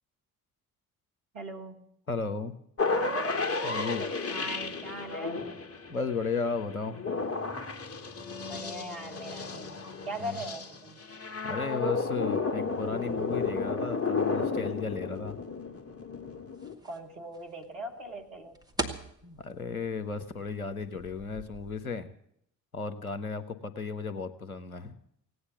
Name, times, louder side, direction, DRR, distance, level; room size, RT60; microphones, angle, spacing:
voice 1, 1.3-1.8 4.3-5.5 8.5-9.8 10.1-11.0 16.8-18.6, right 1 dB, 80° right, 1 dB, 1.7 m, -40 dB
voice 2, 2.1-2.5 3.6-4.1 5.9-7.0 10.2-10.4 11.4-15.4 19.2-22.1 22.7-25.0, left 5 dB, 90° left, 11 dB, 0.8 m, -34 dB
sound 1, 2.8-16.7, left 4 dB, 35° left, 1.9 m, -33 dB
sound 2, 16.5-21.8, right 2 dB, 10° right, 2.0 m, -42 dB
17.0 x 9.6 x 8.1 m, 0.70 s
figure-of-eight pair, 45°, 42 cm